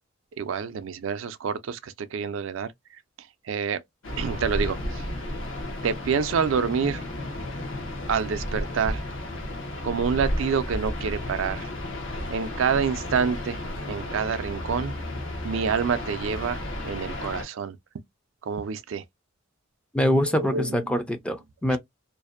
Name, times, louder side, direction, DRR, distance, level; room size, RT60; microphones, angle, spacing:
voice 1, 0.4-2.7 3.4-3.8 4.2-5.0 5.8-7.0 8.1-9.0 9.8-11.7 12.3-13.6 13.9-14.9 15.4-17.8 18.4-19.0 20.4-20.8, right 6 dB, 70° right, 0.4 m, -27 dB
sound 1, 4.0-17.4, left 1 dB, 65° left, 0.7 m, -33 dB
voice 2, 19.9-21.8, equal, 5° left, 0.3 m, -24 dB
2.5 x 2.0 x 2.4 m
head